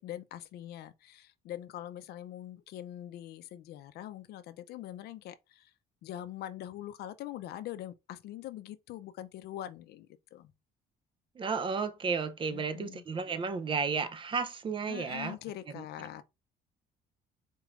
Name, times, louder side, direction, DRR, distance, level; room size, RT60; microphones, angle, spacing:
voice 1, 0.0-5.7 6.0-10.5 12.5-13.0 14.9-16.2, left 12 dB, 70° left, 0.5 m, -43 dB
voice 2, 11.4-15.4 15.8-15.9, right 5 dB, 30° right, 0.5 m, -33 dB
4.4 x 3.1 x 2.4 m
cardioid pair, 110°, 17 cm